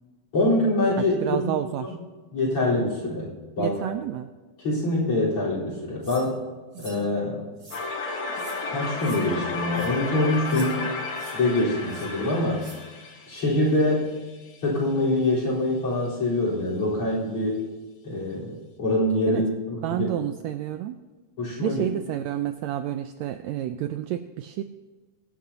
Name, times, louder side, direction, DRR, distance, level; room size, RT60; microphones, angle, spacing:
voice 1, 0.3-1.4 1.8-1.9 2.3-3.3 3.6-3.8 4.6-6.4 6.8-7.4 8.7-10.8 11.3-12.6 13.3-14.1 14.6-17.6 18.0-18.5 18.8-19.5 19.9-20.1 21.4-21.8, left 1 dB, 45° left, -5 dB, 4.9 m, -24 dB
voice 2, 1.0-2.0 3.6-4.3 6.7-6.9 19.3-19.5 19.8-21.0 21.6-24.6, right 12 dB, 85° right, 9 dB, 1.6 m, -29 dB
sound 1, 6.0-6.3 6.7-7.0 7.6-7.8 8.3-8.6 9.0-9.2 9.7-9.9 10.4-10.7 11.1-11.3 11.9-12.1 12.6-12.8, right 2 dB, 35° right, 4.8 m, -45 dB
sound 2, 7.7-14.6, left 3 dB, 65° left, 2.7 m, -33 dB
23.0 x 10.0 x 2.8 m, 1.3 s
omnidirectional pair, 3.7 m